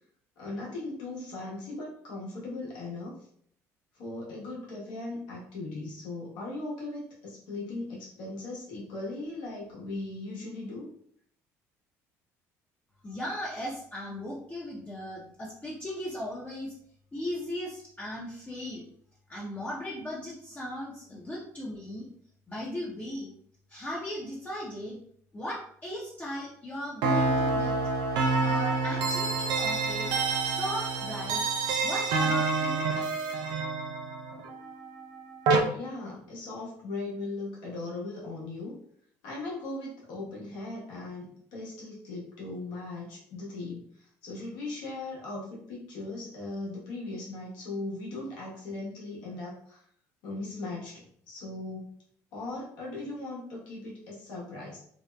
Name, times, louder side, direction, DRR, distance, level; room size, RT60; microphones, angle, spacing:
voice 1, 0.4-3.3 3.9-10.9 35.7-38.8 39.2-49.8 50.2-51.9 52.3-54.8, left 2 dB, 80° left, -4 dB, 1.1 m, -38 dB
voice 2, 13.0-16.7 17.1-18.8 19.3-22.1 22.5-23.3 23.7-25.0 25.3-27.7 28.4-30.1 30.4-31.4 31.8-32.9, equal, 20° left, -5 dB, 0.6 m, -37 dB
sound 1, 27.0-35.6, right 3 dB, 65° right, 0.4 m, -28 dB
2.7 x 2.0 x 2.2 m, 0.64 s
supercardioid pair, 70°, 8 cm